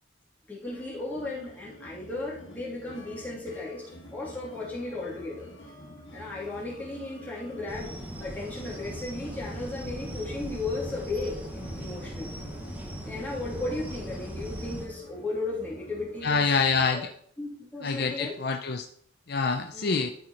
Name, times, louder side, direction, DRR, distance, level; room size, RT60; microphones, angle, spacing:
voice 1, 0.5-3.8 4.1-5.5 6.1-12.4 13.0-16.5 16.9-17.0 17.4-18.3 19.7-20.1, left 2 dB, 10° left, -6 dB, 2.8 m, -35 dB
sound 1, 0.6-16.9, equal, 70° left, 2.0 m, -48 dB
sound 2, 7.7-14.9, right 1 dB, 10° right, 1.2 m, -39 dB
voice 2, 16.2-17.1 17.8-18.9 19.3-20.1, left 4 dB, 50° left, 6 dB, 0.5 m, -26 dB
13.0 x 4.8 x 4.2 m, 0.64 s
head